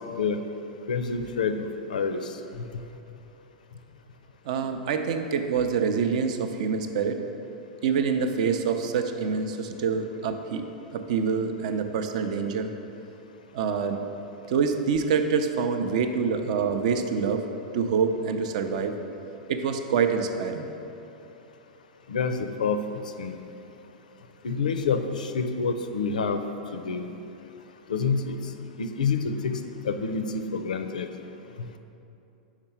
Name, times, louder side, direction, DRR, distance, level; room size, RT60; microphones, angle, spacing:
voice 1, 0.1-0.4 0.9-2.2 22.1-22.8 23.2-23.3 24.4-26.4 26.7-27.1 27.9-28.4 28.8-29.6 29.8-31.1, left 5 dB, 75° left, 8 dB, 0.4 m, -27 dB
voice 2, 4.5-7.2 7.8-10.7 10.9-12.7 13.5-14.0 14.5-17.5 17.7-18.9 19.5-20.7, right 6 dB, 60° right, 7 dB, 0.5 m, -26 dB
4.8 x 4.4 x 5.7 m, 2.8 s
hypercardioid pair, 100°, 4 cm